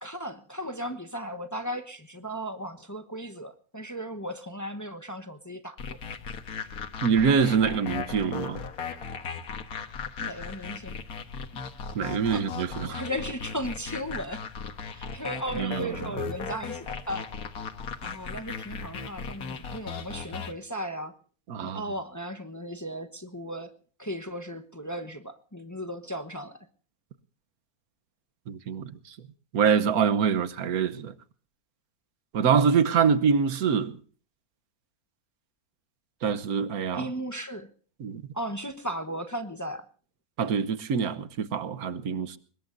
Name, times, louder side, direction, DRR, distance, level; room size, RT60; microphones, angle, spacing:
voice 1, 0.0-6.0 10.2-11.0 12.3-14.4 14.8-17.3 18.0-21.1 21.6-23.7 24.0-26.6 36.9-37.7 38.3-39.8, equal, 15° left, 1.0 m, -36 dB
sound 1, 5.8-20.5, left 5 dB, 80° left, 1.8 m, -37 dB
voice 2, 7.0-8.6 11.9-13.0 15.5-15.9 21.5-21.8 28.5-29.2 29.5-31.1 32.3-34.0 36.2-37.1 38.0-38.2 40.4-42.4, right 6 dB, 80° right, 1.5 m, -25 dB
23.5 x 21.0 x 2.6 m
omnidirectional pair, 1.5 m